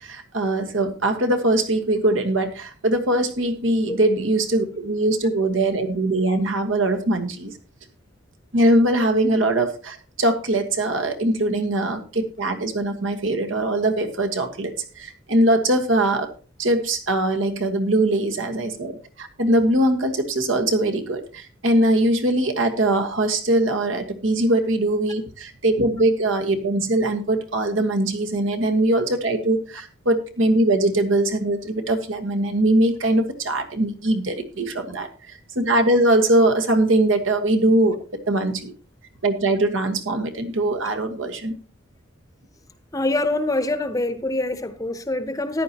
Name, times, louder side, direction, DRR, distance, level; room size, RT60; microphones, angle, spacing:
voice 1, 0.0-7.5 8.5-16.3 16.6-38.7 39.2-41.5, right 1 dB, 85° right, 1.5 m, -21 dB
voice 2, 42.9-45.6, left 2 dB, 15° left, 0.7 m, -25 dB
14.5 x 9.9 x 2.9 m
head